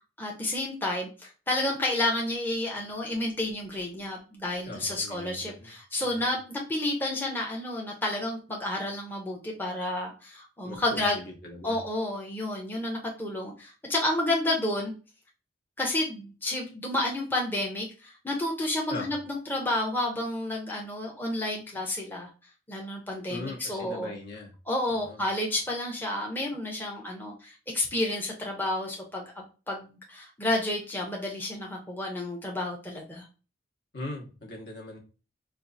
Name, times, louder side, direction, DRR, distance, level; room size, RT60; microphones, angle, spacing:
voice 1, 0.2-11.2 11.6-14.9 15.8-22.3 22.7-24.1 24.7-33.3, left 1 dB, 10° left, -1 dB, 0.6 m, -30 dB
voice 2, 4.7-5.7 6.0-6.3 10.6-11.8 18.9-19.2 23.3-24.5 24.9-25.2 33.9-35.0, left 2 dB, 65° left, 0 dB, 1.1 m, -40 dB
4.4 x 2.4 x 2.5 m, 0.33 s
head